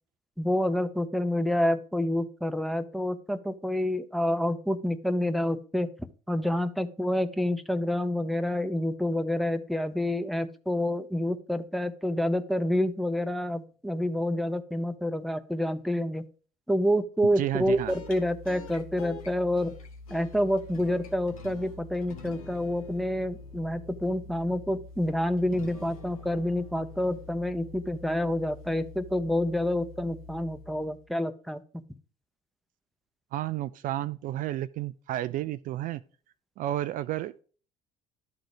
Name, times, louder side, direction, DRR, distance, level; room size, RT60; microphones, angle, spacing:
voice 1, 0.4-16.3 16.7-19.7 20.1-31.6, left 1 dB, ahead, 0.7 m, -28 dB
voice 2, 17.4-17.9 33.3-36.0 36.6-37.4, right 13 dB, 50° right, 0.4 m, -31 dB
sound 1, 17.5-31.1, left 3 dB, 90° left, 1.0 m, -46 dB
11.5 x 3.9 x 4.9 m
hypercardioid pair, 60°, 17 cm